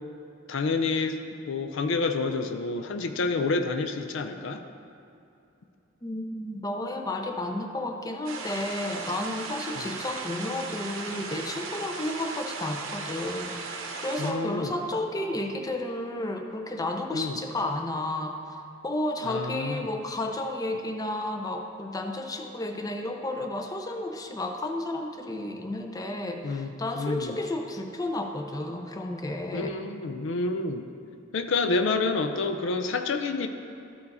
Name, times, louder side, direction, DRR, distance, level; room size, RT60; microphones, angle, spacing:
voice 1, 0.5-4.6 9.8-9.9 14.2-14.7 17.1-17.4 19.2-19.9 26.4-27.4 29.5-30.8 31.3-33.5, left 3 dB, 65° left, 7 dB, 0.5 m, -28 dB
voice 2, 6.0-18.3 18.8-29.7, left 1 dB, 20° left, 4 dB, 0.5 m, -32 dB
sound 1, 8.2-14.3, right 4 dB, 85° right, 0.9 m, -37 dB
13.0 x 4.6 x 4.2 m, 2.6 s
head